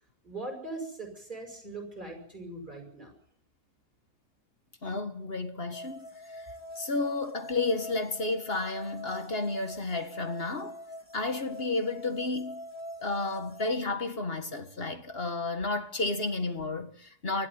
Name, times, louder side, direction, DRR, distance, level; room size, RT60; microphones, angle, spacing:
voice 1, 0.2-3.1, right 2 dB, 30° right, 7.1 m, -40 dB
voice 2, 4.8-6.1 6.3-6.5 6.8-10.8 11.1-12.6 13.0-17.5, left 3 dB, 35° left, 1.8 m, -32 dB
sound 1, 5.7-13.8, left 1 dB, 15° left, 1.8 m, -44 dB
20.5 x 13.0 x 9.6 m
omnidirectional pair, 1.7 m